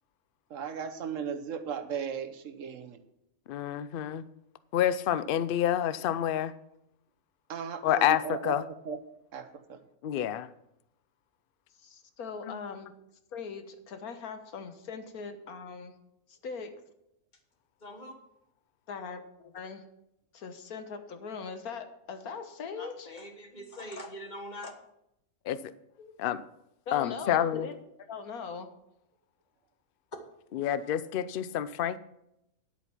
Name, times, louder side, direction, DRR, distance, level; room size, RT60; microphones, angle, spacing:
voice 1, 0.5-3.0 7.5-8.6 8.8-9.0 9.3-9.8, right 7 dB, 60° right, 8 dB, 1.3 m, -36 dB
voice 2, 3.5-4.2 4.7-6.5 7.8-8.6 10.0-10.5 25.5-25.6 26.2-26.4 26.9-27.7 30.5-32.0, left 11 dB, 60° left, 15 dB, 0.5 m, -28 dB
voice 3, 11.8-12.9 13.3-15.9 16.3-16.7 18.9-19.8 20.3-23.1 26.0-26.2 26.9-28.7, left 5 dB, 85° left, 8 dB, 1.6 m, -41 dB
voice 4, 17.8-18.1 22.8-24.7, equal, 30° left, 5 dB, 1.5 m, -42 dB
10.5 x 8.4 x 5.7 m, 0.81 s
omnidirectional pair, 1.5 m